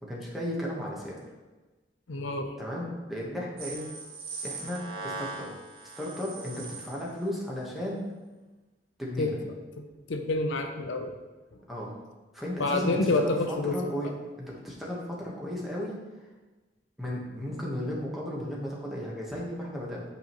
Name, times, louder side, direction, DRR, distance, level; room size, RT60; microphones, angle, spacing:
voice 1, 0.0-1.2 2.6-3.9 4.4-5.5 6.0-8.0 9.0-9.4 11.7-11.9 12.3-16.0 17.0-20.0, left 1 dB, ahead, -5 dB, 1.2 m, -35 dB
voice 2, 2.1-2.5 9.2-9.3 9.8-11.1 12.6-13.8, left 2 dB, 80° left, 5 dB, 0.6 m, -28 dB
sound 1, 3.6-7.2, right 3 dB, 50° right, 1.2 m, -40 dB
8.3 x 5.0 x 3.0 m, 1.2 s
head